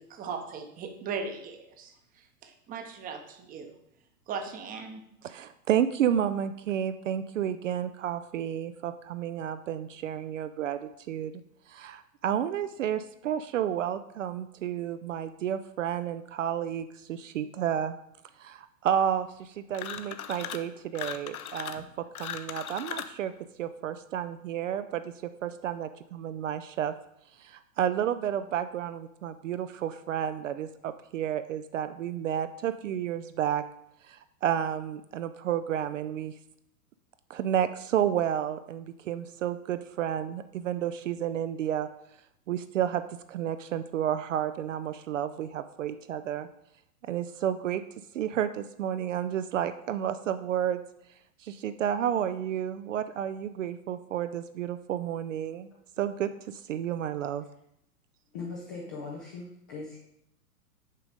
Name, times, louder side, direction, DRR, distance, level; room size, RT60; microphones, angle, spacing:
voice 1, 0.0-3.8 4.3-5.0, right 5 dB, 20° right, 6 dB, 0.8 m, -38 dB
voice 2, 5.2-10.8 11.1-11.3 11.7-18.0 18.4-23.3 23.6-25.1 25.4-26.9 27.4-33.6 34.1-36.3 37.3-41.9 42.5-43.0 43.3-46.5 47.1-47.8 48.1-50.8 51.4-55.7 56.0-57.4, right 10 dB, 55° right, 11 dB, 0.5 m, -31 dB
sound 1, 19.7-20.7 20.9-23.2, left 9 dB, 65° left, 0.7 m, -38 dB
voice 3, 58.3-60.0, left 4 dB, 15° left, -3 dB, 0.3 m, -39 dB
6.7 x 4.9 x 5.1 m, 0.76 s
figure-of-eight pair, 105°, 47 cm